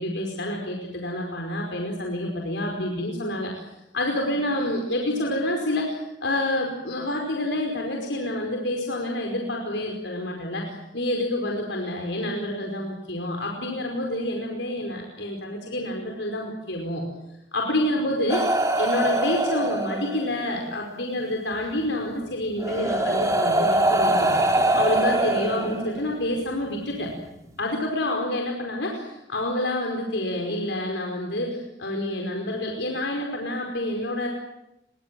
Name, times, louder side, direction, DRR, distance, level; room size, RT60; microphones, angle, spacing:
voice 1, 0.0-3.6 3.9-17.0 17.5-18.5 18.8-24.3 24.7-27.1 27.6-34.3, left 1 dB, 70° left, 1 dB, 5.1 m, -28 dB
sound 1, 18.3-20.4 21.8-21.9 22.6-26.2 27.3-27.5, right 1 dB, 15° right, 3.9 m, -23 dB
29.5 x 24.0 x 7.8 m, 0.90 s
head